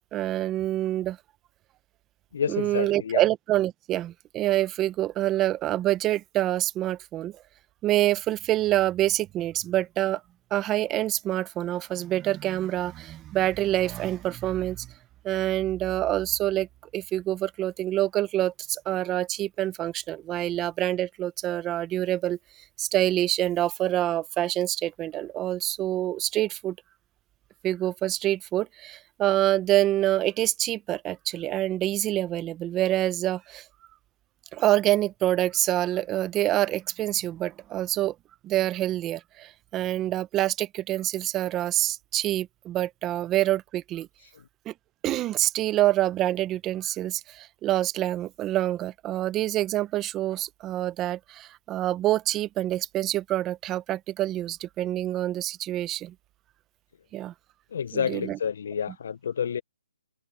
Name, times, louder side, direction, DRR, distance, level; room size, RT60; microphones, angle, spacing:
voice 1, 0.1-1.2 2.5-7.4 7.8-10.2 10.5-14.9 15.2-16.7 16.9-22.4 22.8-26.8 27.6-33.6 34.5-38.1 38.4-44.1 44.7-44.8 45.0-56.1 57.1-57.3 57.9-58.4, right 14 dB, 15° right, 0.7 m, -26 dB
voice 2, 2.3-3.2 44.2-44.3 57.7-59.6, left 7 dB, 50° left, 0.5 m, -29 dB
open air
hypercardioid pair, 165°, 0 cm